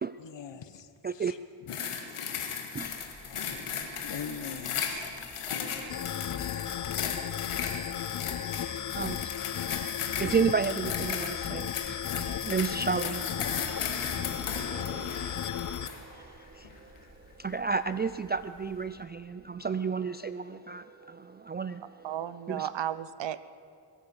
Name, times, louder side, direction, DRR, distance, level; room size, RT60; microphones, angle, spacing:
voice 1, 0.2-1.4 2.0-2.2 3.6-4.9 5.4-5.6 6.6-7.3, left 7 dB, 60° left, 12 dB, 1.0 m, -43 dB
sound 1, 1.7-16.0 16.6-16.8, left 7 dB, 85° left, 1.7 m, -36 dB
Fowl, 2.7-19.0, left 1 dB, 15° left, 3.4 m, -51 dB
sound 2, 5.9-15.9, left 10 dB, 40° left, 0.5 m, -35 dB
voice 2, 8.9-9.3 10.2-13.5 13.9-14.4 15.3-15.4 15.8-16.9 17.4-22.1 22.5-22.7, right 5 dB, 25° right, 12 dB, 0.3 m, -32 dB
voice 3, 22.0-23.4, right 11 dB, 60° right, 15 dB, 0.7 m, -34 dB
22.0 x 8.9 x 7.0 m, 2.4 s
cardioid pair, 60°, 50 cm